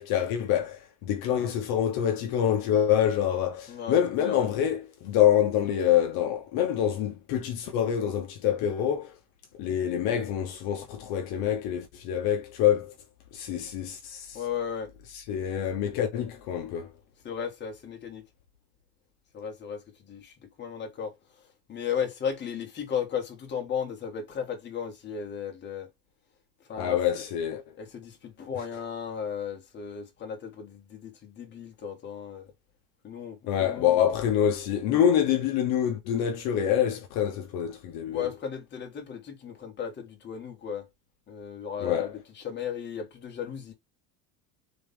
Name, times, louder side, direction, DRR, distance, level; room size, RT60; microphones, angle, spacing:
voice 1, 0.0-9.2 9.5-12.9 13.3-14.4 15.3-16.9 26.8-27.6 33.5-38.3 41.8-42.1, left 10 dB, 60° left, 1.0 m, -26 dB
voice 2, 3.7-4.5 14.3-14.9 17.2-18.2 19.3-25.9 26.6-27.2 27.8-32.5 33.0-34.0 38.1-40.9 41.3-43.7, left 7 dB, 25° left, 1.5 m, -35 dB
4.0 x 3.4 x 3.6 m
cardioid pair, 170°, 42 cm